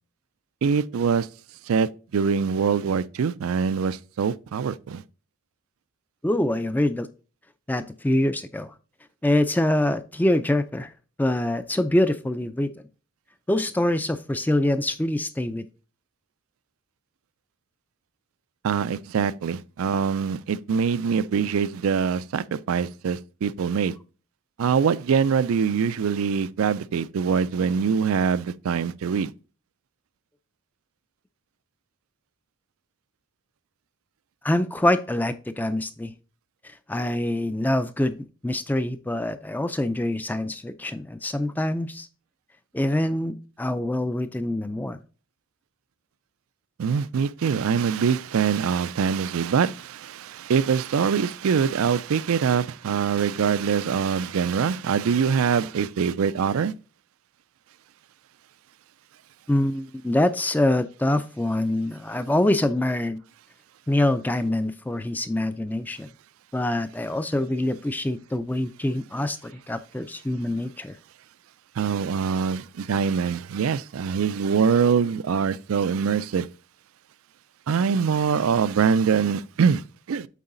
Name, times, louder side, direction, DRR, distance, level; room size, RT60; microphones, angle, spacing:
voice 1, 0.6-1.3 1.7-5.0 18.6-24.0 24.6-29.3 46.8-56.7 71.8-76.5 77.7-80.3, right 6 dB, 90° right, 0.4 m, -24 dB
voice 2, 6.2-7.1 7.7-8.7 9.2-10.9 11.2-12.7 13.5-15.7 34.4-36.1 36.6-38.2 38.4-42.1 42.7-45.0 59.5-63.2 63.9-66.1 66.5-71.0, left 1 dB, 10° left, 0.3 m, -25 dB
8.3 x 3.9 x 3.8 m
head